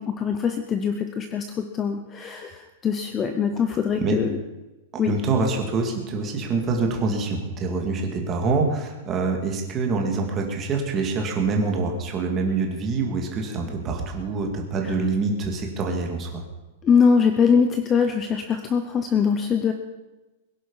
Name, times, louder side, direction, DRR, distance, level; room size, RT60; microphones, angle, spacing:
voice 1, 0.0-4.4 5.0-5.1 14.8-14.9 16.8-19.7, left 6 dB, 15° left, 7 dB, 0.7 m, -22 dB
voice 2, 4.9-16.4, right 4 dB, 15° right, 2 dB, 2.2 m, -25 dB
21.5 x 11.0 x 5.6 m, 1.1 s
supercardioid pair, 180°, 0 cm